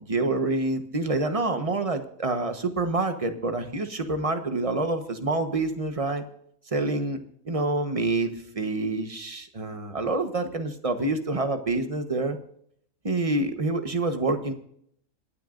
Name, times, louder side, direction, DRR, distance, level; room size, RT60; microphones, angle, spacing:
voice 1, 0.1-6.2 6.7-7.2 7.4-12.4 13.0-14.5, right 2 dB, 25° right, 7 dB, 1.1 m, -27 dB
27.0 x 9.4 x 2.6 m, 0.68 s
omnidirectional pair, 1.5 m